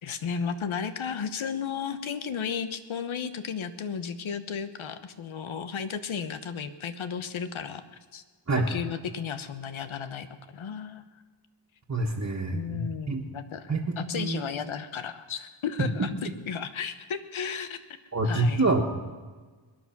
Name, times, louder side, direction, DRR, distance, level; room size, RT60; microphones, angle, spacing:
voice 1, 0.0-7.8 8.1-8.2 8.7-11.0 12.5-16.2 16.5-17.8 18.2-18.6, left 7 dB, 85° left, 10 dB, 1.1 m, -34 dB
voice 2, 11.9-13.2 13.7-14.4 15.8-15.9 18.1-18.8, right 2 dB, 35° right, -4 dB, 1.7 m, -26 dB
21.5 x 10.0 x 6.0 m, 1.4 s
cardioid pair, 70°, 47 cm